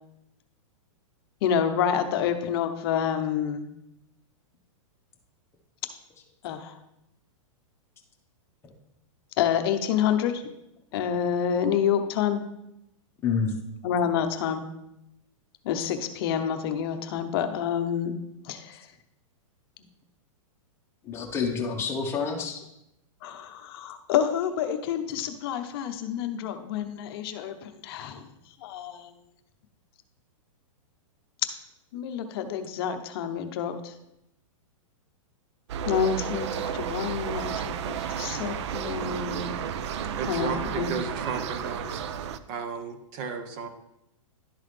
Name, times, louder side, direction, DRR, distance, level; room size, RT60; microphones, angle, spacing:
voice 1, 1.4-3.6 6.4-6.8 9.4-10.4 10.9-12.4 13.8-14.6 15.6-18.1 18.4-18.8 23.2-28.2 28.6-29.1 31.9-33.9 35.9-36.5 36.7-37.8 38.1-39.6 40.3-40.9, left 8 dB, 45° left, 8 dB, 0.8 m, -28 dB
voice 2, 13.2-13.5 21.0-22.6 26.3-26.6 27.0-27.1, left 5 dB, 15° left, 0 dB, 1.1 m, -29 dB
sound 1, 35.7-42.4, right 8 dB, 55° right, 0.5 m, -32 dB
voice 3, 40.1-42.0 42.5-43.7, right 5 dB, 35° right, 8 dB, 0.9 m, -34 dB
11.5 x 3.9 x 3.3 m, 0.84 s
hypercardioid pair, 150°, 17 cm